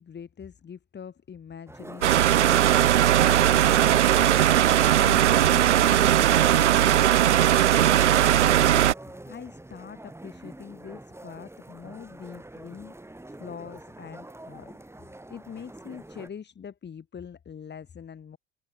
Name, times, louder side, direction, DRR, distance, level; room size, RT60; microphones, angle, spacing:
voice 1, 0.0-12.9 13.3-18.4, left 7 dB, 30° left, 5.9 m, -43 dB
sound 1, 1.7-16.3, right 1 dB, 5° right, 7.7 m, -45 dB
sound 2, 2.0-8.9, right 11 dB, 75° right, 0.8 m, -19 dB
figure-of-eight pair, 65°, 36 cm